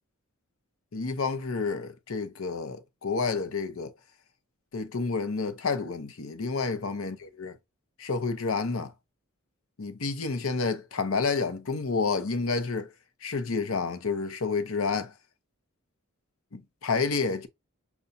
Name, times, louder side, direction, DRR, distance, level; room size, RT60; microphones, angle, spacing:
voice 1, 0.9-3.9 4.7-7.6 8.0-8.9 9.8-12.9 13.2-15.1 16.5-17.5, left 4 dB, 80° left, 0.8 m, -29 dB
6.8 x 2.3 x 2.6 m
head